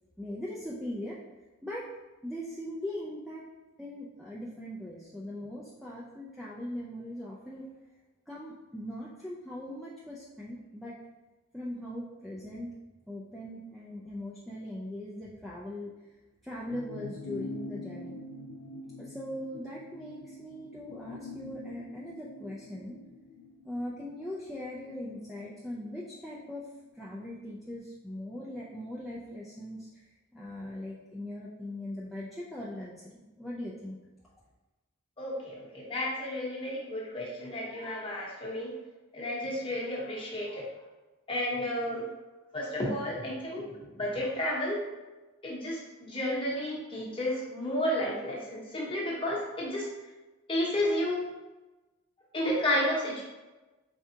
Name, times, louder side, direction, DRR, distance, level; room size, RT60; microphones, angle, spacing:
voice 1, 0.2-1.2 1.6-1.9 2.2-3.4 3.8-7.6 8.3-11.0 11.5-12.8 13.1-15.9 16.4-18.2 19.0-23.0 23.6-26.7 26.9-34.0, left 1 dB, ahead, -7 dB, 0.3 m, -40 dB
sound 1, 16.7-26.5 26.9-27.0, left 2 dB, 85° left, 0.4 m, -45 dB
voice 2, 35.2-38.7 39.1-40.7 41.3-42.0 42.5-44.8 45.4-49.9 50.5-51.2 52.3-53.2, left 1 dB, 25° left, -4 dB, 0.9 m, -32 dB
4.7 x 3.4 x 2.7 m, 1.2 s
head